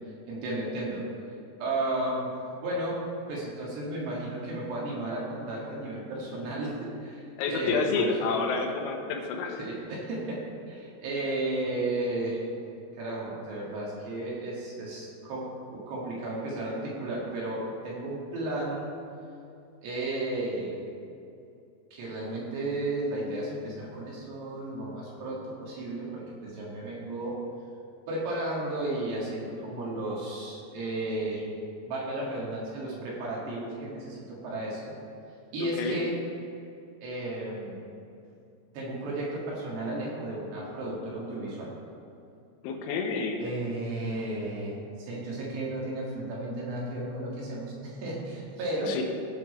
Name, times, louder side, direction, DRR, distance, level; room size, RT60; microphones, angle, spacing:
voice 1, 0.3-1.1 1.6-3.0 3.3-7.2 7.5-8.4 9.6-12.4 12.9-18.9 19.8-20.9 21.9-27.4 28.1-31.4 31.9-34.9 35.5-36.1 37.0-37.8 38.7-41.7 43.4-49.0, right 2 dB, 60° right, -5 dB, 3.7 m, -33 dB
voice 2, 7.4-9.6 35.8-36.0 42.6-43.4 48.9-49.0, left 4 dB, 90° left, 2 dB, 3.8 m, -29 dB
17.5 x 6.1 x 4.2 m, 2.6 s
omnidirectional pair, 5.9 m